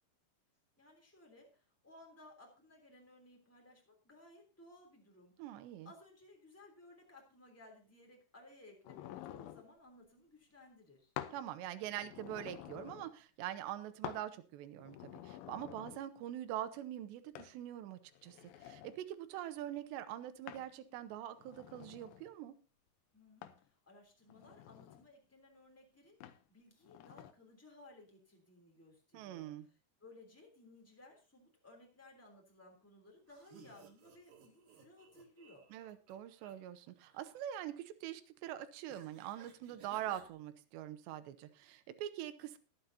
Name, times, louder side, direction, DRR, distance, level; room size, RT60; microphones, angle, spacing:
voice 1, 0.8-5.5 5.8-11.1 23.1-35.6, left 2 dB, 5° left, 1 dB, 2.6 m, -60 dB
voice 2, 5.4-5.9 11.3-22.6 29.1-29.7 35.7-42.6, right 12 dB, 90° right, 11 dB, 3.0 m, -44 dB
sound 1, 8.8-9.7 11.2-11.4 11.8-13.1 14.0-14.3 14.8-16.0 17.4-17.5 18.1-19.0 20.5-20.7 21.3-22.3 23.4-23.6 24.3-25.1 26.2-26.4 26.8-27.3, left 12 dB, 80° left, 2.2 m, -49 dB
sound 2, 33.3-36.5 36.9-37.4 38.9-40.3, right 6 dB, 60° right, 3.2 m, -61 dB
20.5 x 8.0 x 2.8 m, 0.35 s
omnidirectional pair, 4.9 m